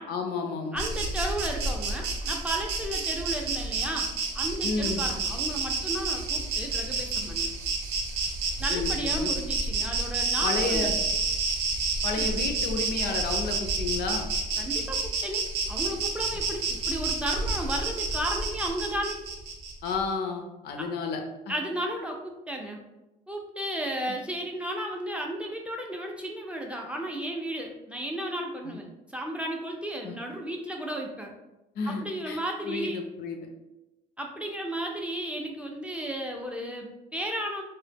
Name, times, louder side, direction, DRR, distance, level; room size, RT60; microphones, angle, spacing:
voice 1, 0.1-0.8 4.6-5.0 8.7-9.3 10.4-10.9 12.0-14.3 19.8-21.2 21.5-21.6 28.6-28.8 30.0-30.2 31.8-32.4 32.6-33.4, left 4 dB, 70° left, 4 dB, 0.4 m, -31 dB
voice 2, 0.7-4.1 4.3-7.5 8.6-10.9 12.1-12.4 14.6-19.2 20.8-20.9 21.5-22.8 23.3-31.3 31.9-33.0 34.2-37.6, right 1 dB, 5° right, 0 dB, 0.3 m, -34 dB
Insect, 0.8-19.9, right 3 dB, 85° right, 0.5 m, -29 dB
2.0 x 2.0 x 3.3 m, 0.97 s
cardioid pair, 110°, 17 cm